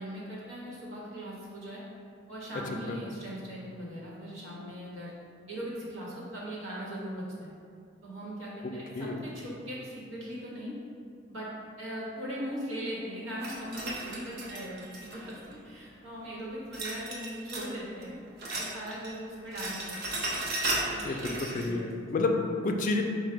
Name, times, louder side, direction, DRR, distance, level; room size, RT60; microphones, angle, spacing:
voice 1, 0.0-1.8 2.3-5.1 5.5-7.5 8.0-10.7 11.3-11.5 11.8-18.1 18.5-20.2 20.8-21.2 21.5-21.8 22.2-22.3, equal, 90° right, -6 dB, 1.1 m, -39 dB
voice 2, 8.6-9.2 21.0-23.0, left 3 dB, 40° left, 3 dB, 0.4 m, -30 dB
sound 1, 13.4-15.5 16.7-17.7 18.0-19.2 19.4-21.7, right 2 dB, 55° right, 0.7 m, -35 dB
4.8 x 2.2 x 4.5 m, 2.4 s
head